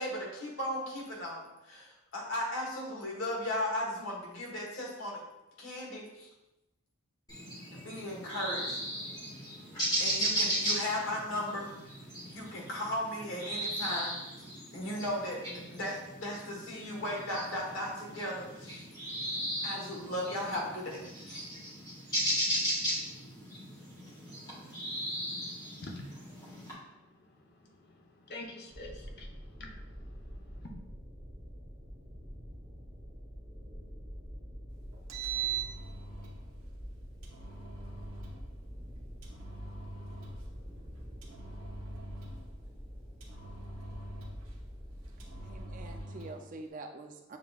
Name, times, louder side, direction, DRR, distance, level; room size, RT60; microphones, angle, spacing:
voice 1, 0.0-5.2 5.6-6.3 7.7-8.8 10.0-11.7 12.3-14.2 14.7-18.9 19.6-21.4, left 1 dB, 70° left, -2 dB, 1.3 m, -36 dB
sound 1, 7.3-26.7, right 1 dB, 20° left, 1.4 m, -36 dB
voice 2, 25.8-30.7, left 2 dB, 50° left, 1 dB, 0.7 m, -49 dB
sound 2, 28.7-46.0, equal, 15° right, 0.8 m, -46 dB
Engine, 34.9-36.4 37.2-38.4 39.2-40.5 41.2-42.5 43.2-44.5 45.2-46.4, right 7 dB, 85° right, 0.9 m, -42 dB
voice 3, 45.4-47.4, right 3 dB, 40° right, 5 dB, 0.4 m, -46 dB
7.2 x 2.9 x 2.3 m, 0.95 s
head